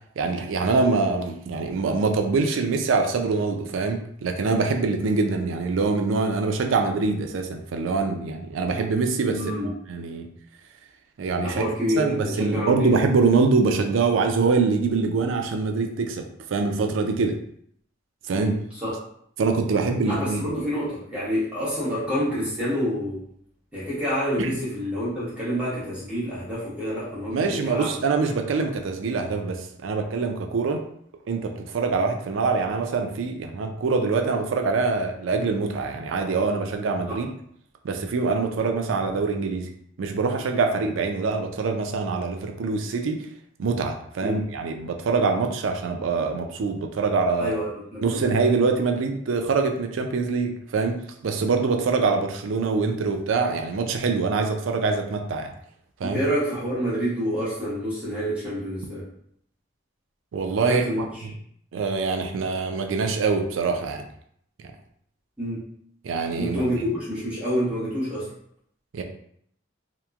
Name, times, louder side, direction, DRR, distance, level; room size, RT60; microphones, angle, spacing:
voice 1, 0.2-9.4 9.9-10.3 11.2-11.7 12.0-16.3 16.5-17.3 18.3-18.6 19.4-20.4 24.4-24.5 27.3-30.8 31.3-37.3 37.8-39.7 40.0-43.2 43.6-47.6 48.0-55.5 56.0-56.2 60.3-60.8 61.2-61.3 61.7-64.0 66.0-66.7 68.9-69.0, right 4 dB, 80° right, 4 dB, 0.4 m, -24 dB
voice 2, 9.3-9.7 11.4-12.9 18.3-18.9 20.0-23.2 23.7-28.0 37.1-37.2 44.2-44.4 47.4-48.2 56.0-59.1 60.6-61.2 65.4-65.7 66.4-68.3, equal, 5° right, -9 dB, 1.0 m, -28 dB
2.9 x 2.1 x 2.3 m, 0.67 s
head